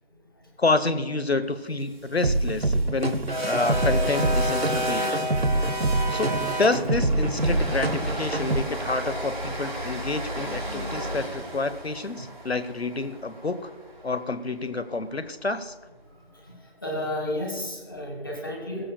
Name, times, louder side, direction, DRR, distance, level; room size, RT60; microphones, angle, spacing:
voice 1, 0.6-5.3 6.1-13.7 14.0-15.7, left 3 dB, 80° left, 13 dB, 1.1 m, -28 dB
sound 1, 2.0-14.2, equal, 50° right, 3.4 m, -32 dB
sound 2, 2.2-8.6, right 2 dB, 70° right, 1.0 m, -26 dB
voice 2, 16.3-18.9, left 1 dB, 20° left, 0 dB, 1.7 m, -32 dB
18.5 x 15.5 x 2.3 m, 1.3 s
figure-of-eight pair, 175°, 32 cm